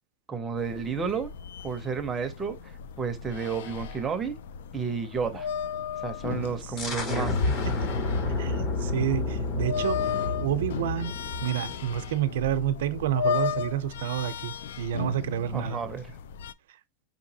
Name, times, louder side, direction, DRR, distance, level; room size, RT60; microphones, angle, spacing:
voice 1, 0.3-1.3 1.6-2.6 3.0-4.3 4.7-5.5 6.0-7.6 15.5-16.1, right 6 dB, 10° right, 0.5 m, -31 dB
sound 1, 0.6-16.5, left 7 dB, 75° left, 0.3 m, -35 dB
sound 2, 6.8-12.3, left 3 dB, 25° left, 0.7 m, -30 dB
voice 2, 7.5-7.9 8.4-10.0 10.4-15.8, right 10 dB, 75° right, 0.5 m, -29 dB
5.2 x 2.9 x 2.7 m
supercardioid pair, 175°, 0 cm